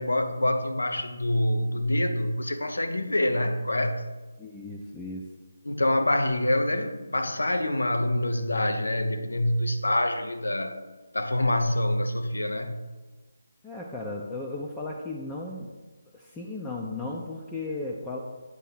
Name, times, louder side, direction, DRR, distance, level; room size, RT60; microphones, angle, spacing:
voice 1, 0.0-4.0 5.6-10.8 11.1-12.8, left 1 dB, 85° left, 0.7 m, -26 dB
voice 2, 4.4-5.2 13.6-15.7 16.1-18.2, left 2 dB, 10° left, 0.5 m, -35 dB
8.1 x 2.7 x 6.1 m
figure-of-eight pair, 155°, 0 cm